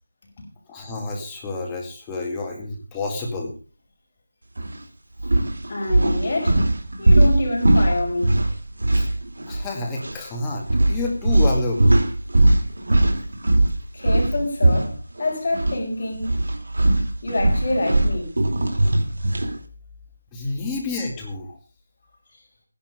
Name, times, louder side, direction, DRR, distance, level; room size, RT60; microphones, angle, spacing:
voice 1, 0.7-3.5 8.9-9.1 9.5-12.0 20.3-21.6, left 2 dB, 10° left, 2.2 m, -29 dB
sound 1, 4.6-4.8 5.2-9.7 10.0-10.2 10.7-15.8 16.1-19.6, right 1 dB, 85° right, 2.8 m, -20 dB
voice 2, 5.7-6.6 7.0-8.4 13.9-16.3 17.2-18.4 20.5-20.6, left 2 dB, 35° left, 5.6 m, -26 dB
14.5 x 11.0 x 5.1 m
figure-of-eight pair, 175°, 0 cm